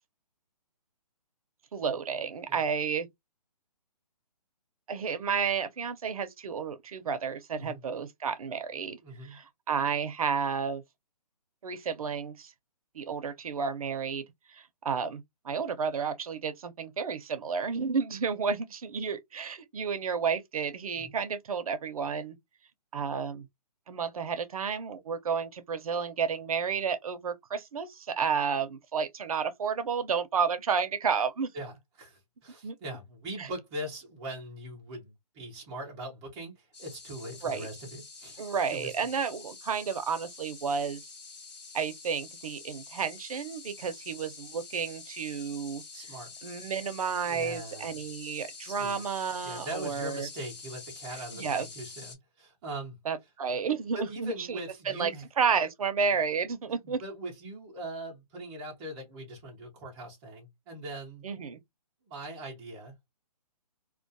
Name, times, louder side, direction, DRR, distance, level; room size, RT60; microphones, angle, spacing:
voice 1, 1.7-3.1 4.9-9.0 9.3-10.8 11.6-12.5 12.9-14.2 14.5-22.4 22.9-23.5 23.9-31.5 32.6-32.7 33.4-33.5 37.4-37.7 38.4-41.0 41.7-45.8 46.4-50.3 51.3-51.7 53.1-54.6 54.9-55.1 55.4-57.0 61.2-61.6, right 6 dB, 60° right, 0.6 m, -31 dB
voice 2, 9.0-9.4 21.0-21.2 31.5-38.4 38.7-38.9 45.9-46.3 47.2-48.0 48.6-49.0 49.4-53.0 53.9-55.3 56.0-56.1 56.8-61.3 62.0-63.0, right 1 dB, 10° right, 0.4 m, -41 dB
sound 1, 36.7-52.2, left 4 dB, 85° left, 1.3 m, -47 dB
2.2 x 2.2 x 2.5 m
hypercardioid pair, 160°, 20 cm